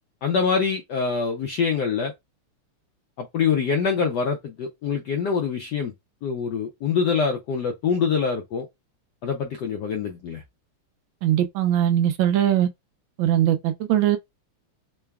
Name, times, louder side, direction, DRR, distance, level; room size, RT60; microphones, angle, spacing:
voice 1, 0.2-2.1 3.2-5.9 6.2-8.7 9.2-10.4, left 6 dB, 75° left, 0.9 m, -25 dB
voice 2, 11.2-12.7 13.2-14.2, right 11 dB, 75° right, 1.2 m, -20 dB
3.8 x 2.2 x 3.4 m
omnidirectional pair, 2.4 m